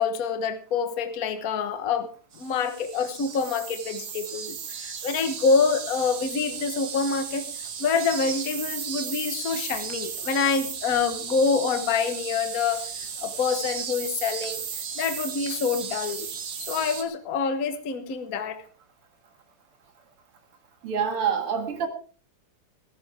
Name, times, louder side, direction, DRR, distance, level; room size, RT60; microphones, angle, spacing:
voice 1, 0.0-2.1 2.4-7.4 7.8-14.6 14.9-16.3 16.6-18.6, left 5 dB, 45° left, 1.5 m, -26 dB
sound 1, 2.3-17.0, right 7 dB, 60° right, 2.1 m, -35 dB
voice 2, 20.8-21.9, right 7 dB, 85° right, 2.9 m, -26 dB
16.0 x 14.5 x 3.6 m
omnidirectional pair, 2.4 m